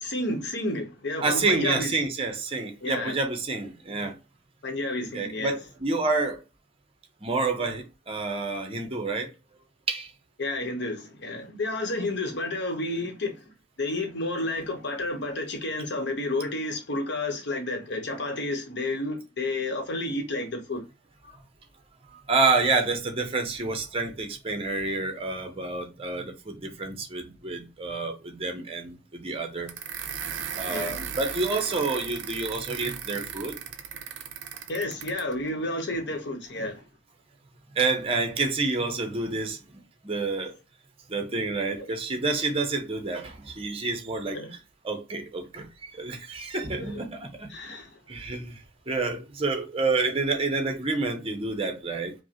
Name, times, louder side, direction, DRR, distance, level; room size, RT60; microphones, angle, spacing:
voice 1, 0.0-1.9 2.8-3.1 4.6-5.6 10.4-13.4 13.8-20.8 30.7-31.0 34.7-36.8 41.8-41.9 44.3-44.5 46.8-47.0 47.5-47.9, left 2 dB, 60° left, 0.9 m, -31 dB
voice 2, 1.2-4.1 5.1-6.4 7.2-9.3 9.9-10.1 22.1-29.7 30.6-33.6 37.8-39.6 40.0-40.5 41.1-44.4 44.8-47.5 48.1-48.6 48.9-52.1, right 3 dB, 30° right, 0.7 m, -28 dB
sound 1, 29.7-35.3, right 8 dB, 65° right, 0.5 m, -36 dB
5.0 x 2.1 x 2.9 m
head